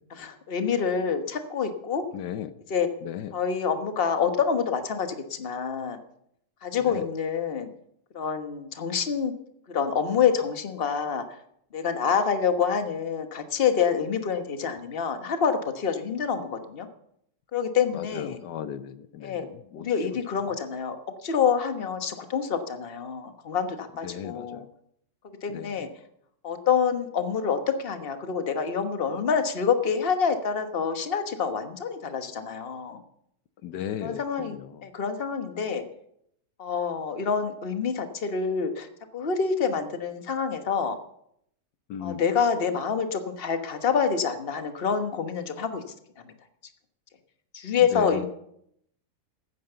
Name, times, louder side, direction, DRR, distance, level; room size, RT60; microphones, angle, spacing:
voice 1, 0.1-2.0 2.7-2.9 3.3-6.0 6.6-7.7 8.1-9.3 9.7-11.2 11.7-16.9 17.5-18.4 19.2-19.5 19.7-21.0 21.2-24.7 25.4-25.9 26.4-33.0 34.0-35.8 36.6-38.9 39.1-41.0 42.0-45.8 47.5-48.3, left 6 dB, 40° left, 8 dB, 1.3 m, -27 dB
voice 2, 2.1-2.5 3.0-3.3 6.8-7.0 17.9-19.9 24.0-24.6 25.5-25.7 33.6-34.8 41.9-42.2 47.9-48.3, left 9 dB, 80° left, 12 dB, 1.3 m, -36 dB
15.0 x 9.5 x 6.7 m, 0.73 s
omnidirectional pair, 1.8 m